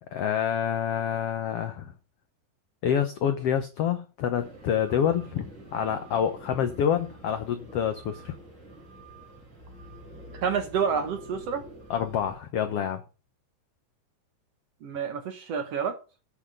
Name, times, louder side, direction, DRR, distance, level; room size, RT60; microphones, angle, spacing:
voice 1, 0.1-1.9 2.8-8.3 11.9-13.0, left 8 dB, 90° left, 1.3 m, -27 dB
sound 1, 4.4-12.4, right 1 dB, 30° right, 4.0 m, -47 dB
voice 2, 10.3-11.7 14.8-16.0, right 6 dB, 60° right, 1.8 m, -29 dB
9.3 x 6.0 x 6.6 m
omnidirectional pair, 3.9 m